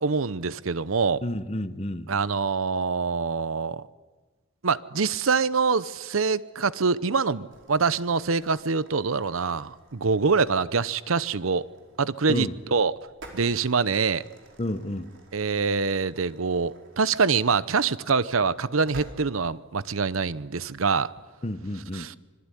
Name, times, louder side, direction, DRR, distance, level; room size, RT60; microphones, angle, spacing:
voice 1, 0.0-1.2 2.1-3.8 4.6-11.7 12.0-13.0 13.3-14.2 15.3-21.1 21.9-22.2, right 5 dB, 90° right, 0.8 m, -25 dB
voice 2, 1.2-2.1 12.3-12.5 14.6-15.1 21.4-22.2, left 1 dB, 30° left, 1.1 m, -30 dB
sound 1, 7.5-19.1, right 2 dB, 65° right, 4.8 m, -52 dB
25.5 x 22.5 x 10.0 m
head